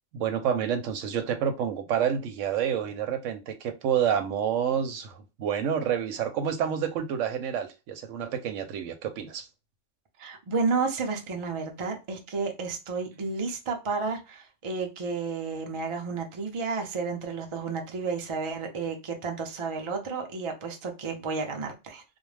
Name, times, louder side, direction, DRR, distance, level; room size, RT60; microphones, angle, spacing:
voice 1, 0.1-9.5, right 8 dB, 85° right, 0.9 m, -28 dB
voice 2, 10.2-22.0, right 4 dB, 40° right, 0.4 m, -31 dB
2.5 x 2.1 x 3.2 m
omnidirectional pair, 1.3 m